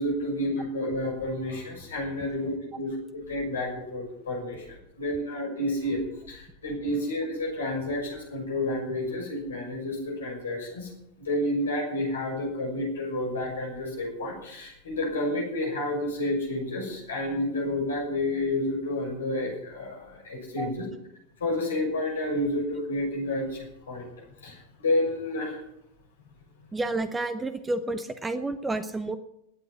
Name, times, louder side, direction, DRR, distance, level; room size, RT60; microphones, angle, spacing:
voice 1, 0.0-10.9 11.2-20.8 21.4-24.1 24.4-25.6, left 1 dB, 70° left, 0 dB, 6.2 m, -30 dB
voice 2, 26.7-29.2, right 2 dB, 10° right, 12 dB, 0.8 m, -30 dB
20.5 x 8.0 x 6.0 m, 0.80 s
figure-of-eight pair, 90°, 0 cm